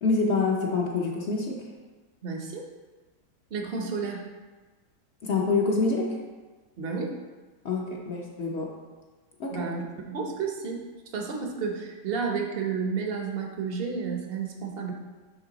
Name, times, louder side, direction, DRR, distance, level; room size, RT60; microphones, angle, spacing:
voice 1, 0.0-1.6 5.2-6.1 7.6-8.7 9.4-9.7, left 3 dB, 55° left, -1 dB, 0.8 m, -26 dB
voice 2, 2.2-2.7 3.5-4.3 6.8-7.1 9.5-10.8 11.1-14.9, right 5 dB, 50° right, 1 dB, 0.7 m, -31 dB
9.3 x 3.3 x 3.9 m, 1.3 s
omnidirectional pair, 1.9 m